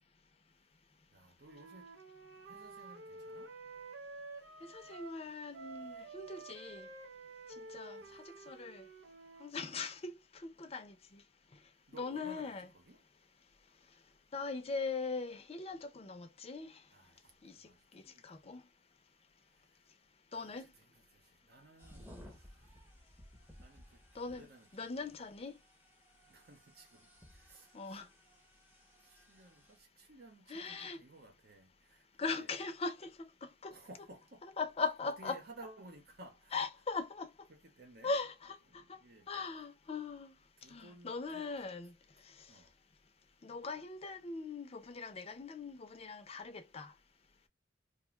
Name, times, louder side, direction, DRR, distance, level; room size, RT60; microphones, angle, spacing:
voice 1, 1.1-1.9 2.4-3.5 8.0-8.4 11.9-13.0 16.9-17.2 17.5-18.6 20.3-22.6 23.6-25.2 26.3-27.1 27.3-28.1 29.0-32.1 32.3-32.5 33.7-34.5 35.0-36.6 37.5-38.1 38.7-39.3 40.6-41.5 42.5-42.7, right 2 dB, 60° right, 0.9 m, -57 dB
Wind instrument woodwind instrument, 1.4-5.2 5.5-9.5, right 3 dB, 85° right, 0.6 m, -50 dB
voice 2, 4.6-6.9 7.6-8.9 9.4-11.2 11.9-12.7 14.3-16.8 17.4-18.6 20.3-20.7 24.2-24.5 24.7-25.6 27.7-28.1 30.5-31.0 32.2-33.7 34.6-35.4 36.5-37.3 38.0-39.0 39.3-40.3 40.7-41.9 42.3-42.4 43.4-46.9, left 4 dB, 35° left, 0.5 m, -40 dB
sound 1, 21.8-29.8, equal, 10° right, 0.8 m, -59 dB
2.5 x 2.2 x 3.1 m
head